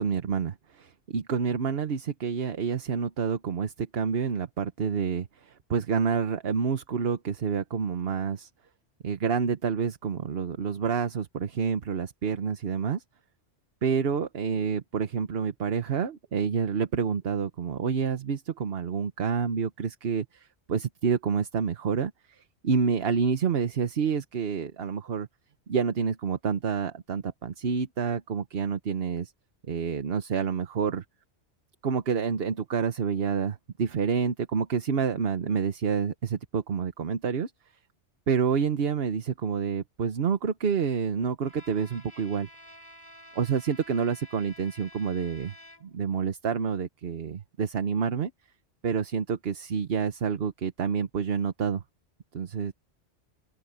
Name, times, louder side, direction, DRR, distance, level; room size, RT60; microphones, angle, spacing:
voice 1, 0.0-8.5 9.0-13.0 13.8-25.3 25.7-29.3 29.7-31.0 31.8-37.5 38.3-42.5 43.3-45.5 45.8-48.3 48.8-51.8 52.3-52.7, right 6 dB, 60° right, 1.2 m, -28 dB
Bowed string instrument, 41.4-46.1, left 1 dB, 20° right, 4.1 m, -51 dB
open air
omnidirectional pair, 1.2 m